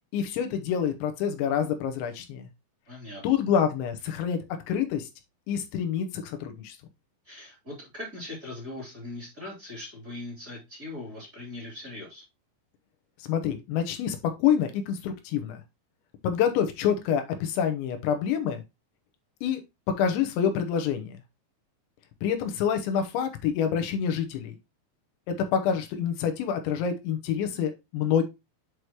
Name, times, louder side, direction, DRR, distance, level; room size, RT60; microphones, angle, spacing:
voice 1, 0.1-2.5 3.2-4.4 4.7-5.1 5.5-6.8 13.3-15.6 16.2-18.6 19.4-19.6 20.0-21.2 22.2-24.6 25.3-28.2, left 8 dB, 80° left, 6 dB, 3.2 m, -27 dB
voice 2, 2.9-3.2 7.2-12.2, left 2 dB, 20° right, -4 dB, 3.2 m, -40 dB
8.0 x 4.8 x 3.0 m, 0.22 s
omnidirectional pair, 5.4 m